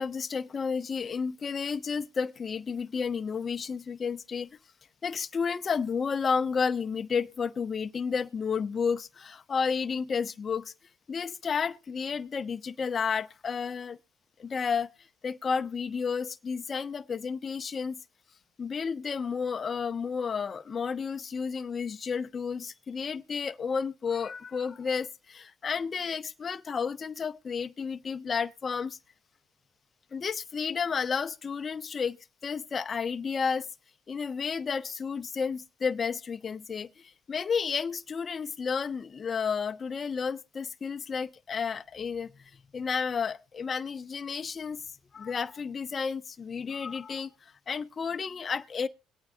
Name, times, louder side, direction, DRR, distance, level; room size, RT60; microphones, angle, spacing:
voice 1, 0.0-4.5 5.0-10.7 11.1-14.0 14.4-14.9 15.2-18.0 18.6-29.0 30.1-32.2 32.4-33.7 34.1-44.8 45.1-47.3 47.7-48.9, left 6 dB, 35° left, 0.7 m, -31 dB
22.0 x 8.8 x 2.6 m
supercardioid pair, 80°, 0 cm